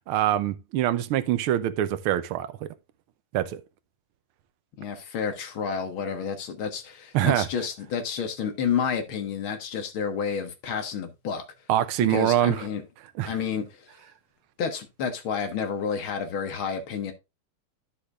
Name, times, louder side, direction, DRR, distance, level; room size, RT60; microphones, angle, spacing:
voice 1, 0.1-2.7 3.3-3.6 7.1-7.5 11.7-12.6 13.2-13.3, right 12 dB, 85° right, 1.6 m, -24 dB
voice 2, 4.8-11.4 12.1-12.8 13.2-13.9 14.6-17.1, left 6 dB, 70° left, 2.2 m, -30 dB
11.5 x 6.7 x 2.4 m
omnidirectional pair, 2.3 m